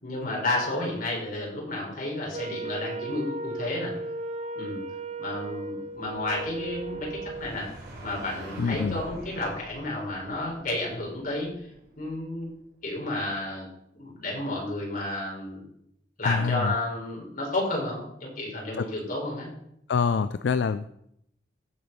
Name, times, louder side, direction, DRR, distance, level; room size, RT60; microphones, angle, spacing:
voice 1, 0.0-3.9 4.6-4.8 5.2-7.7 8.0-11.5 12.0-12.5 12.8-13.7 14.0-15.6 16.2-19.5, left 2 dB, 50° left, -2 dB, 4.2 m, -31 dB
Wind instrument woodwind instrument, 2.3-7.6, right 2 dB, 40° right, 0.6 m, -36 dB
sound 1, 5.8-12.4, right 1 dB, 60° right, 4.4 m, -45 dB
voice 2, 8.6-9.0 16.3-16.7 18.8-18.9 19.9-20.9, left 5 dB, 75° left, 12 dB, 0.4 m, -25 dB
15.0 x 5.1 x 5.5 m, 0.74 s
head